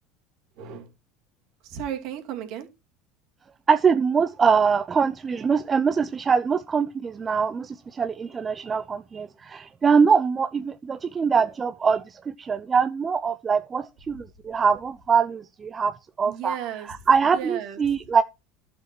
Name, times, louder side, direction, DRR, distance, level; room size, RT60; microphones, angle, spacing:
voice 1, 0.6-0.9 1.6-2.7 16.2-16.9 17.3-17.9, right 10 dB, 60° right, 2.7 m, -34 dB
voice 2, 3.7-16.6 17.1-18.2, right 6 dB, 30° right, 0.7 m, -23 dB
12.0 x 7.1 x 4.6 m
hypercardioid pair, 75°, 0 cm